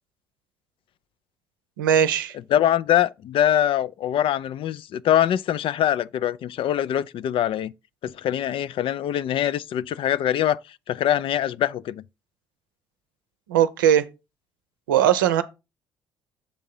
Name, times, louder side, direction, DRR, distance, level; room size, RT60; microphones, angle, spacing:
voice 1, 1.8-2.3 13.5-14.1 14.9-15.4, right 10 dB, 85° right, 0.6 m, -19 dB
voice 2, 2.5-7.7 8.0-12.0, left 11 dB, 55° left, 0.4 m, -23 dB
7.3 x 3.7 x 5.4 m
hypercardioid pair, 50°, 11 cm